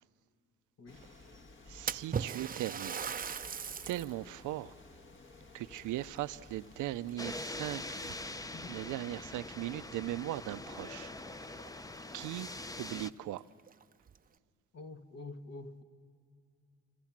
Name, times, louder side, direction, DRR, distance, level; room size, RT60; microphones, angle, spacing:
sound 1, 0.9-8.9, left 3 dB, 40° left, 1.6 m, -55 dB
voice 1, 1.0-1.4 1.7-3.0 3.9-4.7 5.5-8.2 8.6-11.7 12.1-13.4, right 15 dB, 80° right, 0.6 m, -39 dB
Splash splatter, 1.9-4.2 4.7-4.8 5.7-6.7 7.1-7.5 8.3-8.4 8.9-9.0 11.2-11.3 11.6-11.7 12.3-12.4 12.8-12.9 13.6-14.2, right 7 dB, 30° right, 0.5 m, -39 dB
sound 2, 7.2-13.1, left 2 dB, 10° left, 0.6 m, -43 dB
voice 2, 8.5-9.0 14.7-15.8, left 3 dB, 55° left, 2.0 m, -47 dB
28.5 x 26.5 x 7.4 m
cardioid pair, 90°, 30 cm